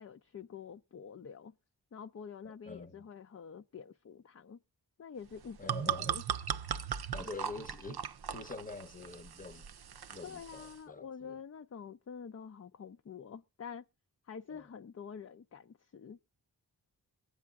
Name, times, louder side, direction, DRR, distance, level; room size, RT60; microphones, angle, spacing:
voice 1, 0.0-1.5 1.9-4.6 5.0-5.7 6.1-6.2 10.2-13.8 14.2-16.2, left 6 dB, 40° left, 0.5 m, -47 dB
voice 2, 2.4-3.1 5.6-6.2 7.1-9.7 10.1-11.4 14.5-14.7, left 3 dB, 20° left, 0.9 m, -46 dB
sound 1, 5.3-10.8, right 8 dB, 65° right, 0.6 m, -38 dB
22.5 x 8.5 x 2.4 m
wide cardioid pair, 65°, 41 cm